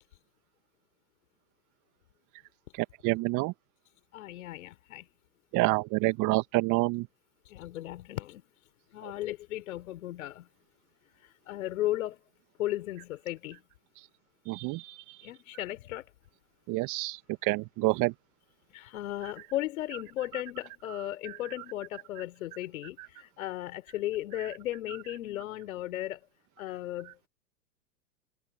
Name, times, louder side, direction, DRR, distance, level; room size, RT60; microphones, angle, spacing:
voice 1, 2.8-3.5 5.5-7.1 9.0-9.1 14.5-15.2 16.7-18.1 21.3-21.4 23.0-23.1, right 22 dB, 40° right, 1.7 m, -28 dB
voice 2, 4.1-5.1 7.5-8.4 8.9-10.5 11.2-12.2 12.6-13.6 15.2-16.1 18.7-26.2 26.6-27.1, left 14 dB, 65° left, 4.6 m, -36 dB
hypercardioid pair, 100°, 44 cm